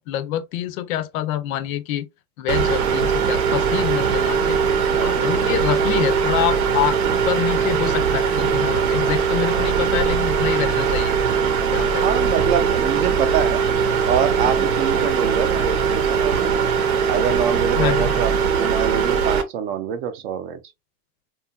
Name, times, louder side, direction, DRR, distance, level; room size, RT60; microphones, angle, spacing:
voice 1, 0.0-2.1 2.4-4.6 4.9-11.2 11.7-12.2 17.7-18.3, left 12 dB, 65° left, 0.5 m, -26 dB
sound 1, 2.5-19.4, right 6 dB, 80° right, 0.9 m, -20 dB
voice 2, 4.9-5.5 12.0-13.7 14.0-16.5 17.1-20.6, right 8 dB, 45° right, 0.5 m, -25 dB
2.8 x 2.4 x 2.3 m
supercardioid pair, 155°, 45 cm